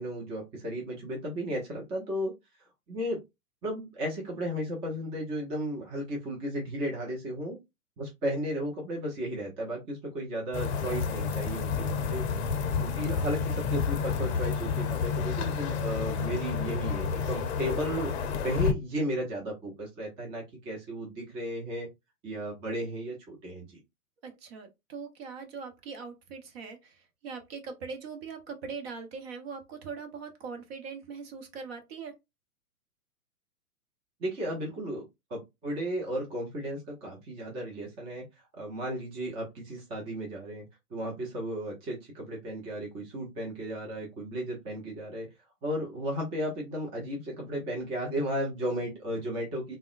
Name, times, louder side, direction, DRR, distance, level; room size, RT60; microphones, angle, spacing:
voice 1, 0.0-2.3 2.9-3.2 3.6-7.6 8.0-12.3 12.8-18.1 18.4-21.9 22.2-23.8 34.2-35.0 35.3-38.2 38.5-40.6 40.9-45.3 45.6-49.7, equal, 15° right, 0.5 m, -34 dB
sound 1, 10.5-18.7, left 6 dB, 45° left, 0.6 m, -30 dB
voice 2, 24.2-32.1, right 5 dB, 40° right, 0.8 m, -41 dB
3.5 x 2.1 x 2.3 m
figure-of-eight pair, 115°, 45 cm